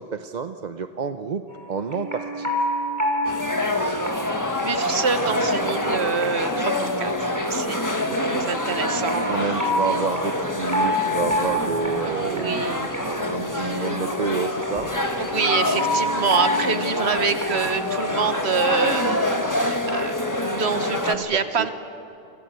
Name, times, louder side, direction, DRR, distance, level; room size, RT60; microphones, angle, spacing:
voice 1, 0.0-1.4 1.7-2.5 9.1-14.9 21.0-21.7, right 5 dB, 45° right, 9 dB, 0.8 m, -29 dB
sound 1, 1.5-19.1, equal, 15° right, 6.2 m, -29 dB
sound 2, 3.2-21.1, left 1 dB, 15° left, 1.7 m, -26 dB
voice 2, 4.6-7.2 7.5-7.8 8.2-9.3 12.0-12.9 13.5-13.9 15.2-21.7, right 5 dB, 85° right, 10 dB, 1.5 m, -26 dB
sound 3, 7.2-15.0, left 1 dB, 60° left, 4.6 m, -43 dB
29.0 x 23.5 x 8.1 m, 2.8 s
omnidirectional pair, 1.1 m